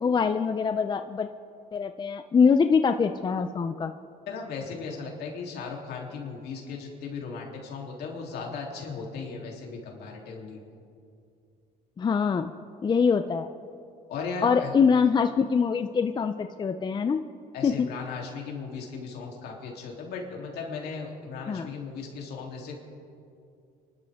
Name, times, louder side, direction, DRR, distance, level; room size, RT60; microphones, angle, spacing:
voice 1, 0.0-1.3 1.7-3.9 12.0-12.5 12.8-13.5 14.4-17.2 17.6-17.9 21.5-21.7, left 6 dB, 25° left, 8 dB, 0.5 m, -24 dB
voice 2, 4.3-10.6 14.1-14.7 17.5-22.8, left 5 dB, 75° left, -1 dB, 3.3 m, -37 dB
29.5 x 12.0 x 3.6 m, 2.5 s
cardioid pair, 110°, 17 cm